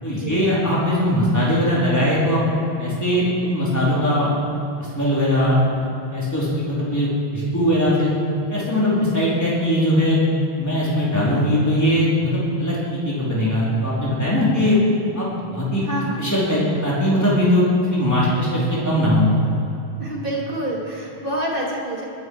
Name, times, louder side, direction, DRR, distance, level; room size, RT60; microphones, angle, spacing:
voice 1, 0.0-2.4 2.8-4.3 4.8-5.6 6.1-8.1 8.5-10.2 10.6-14.8 15.1-15.8 16.2-17.7 17.9-19.3, equal, 15° left, -7 dB, 4.1 m, -20 dB
voice 2, 15.8-16.3 20.0-22.0, right 1 dB, 55° right, -3 dB, 3.1 m, -27 dB
20.5 x 11.0 x 4.9 m, 2.7 s
omnidirectional pair, 1.1 m